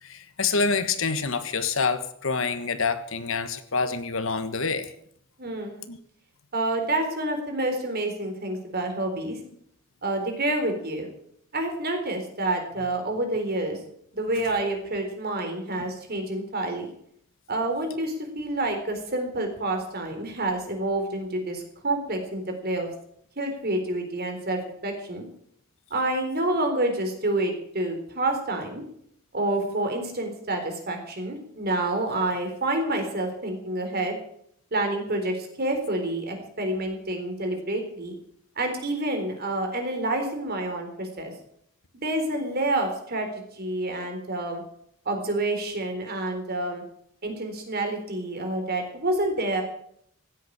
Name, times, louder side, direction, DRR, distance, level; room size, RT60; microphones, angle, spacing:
voice 1, 0.0-4.9 5.9-6.0, left 4 dB, 65° left, 11 dB, 1.3 m, -27 dB
voice 2, 5.4-5.8 6.5-9.4 10.0-11.1 11.5-13.8 14.1-16.9 17.5-22.9 23.4-25.2 25.9-28.8 29.3-34.2 34.7-38.1 38.6-41.3 42.0-43.3 43.5-44.6 45.1-46.8 47.2-49.6, right 2 dB, 50° right, 4 dB, 3.9 m, -28 dB
16.0 x 8.4 x 8.6 m, 0.68 s
head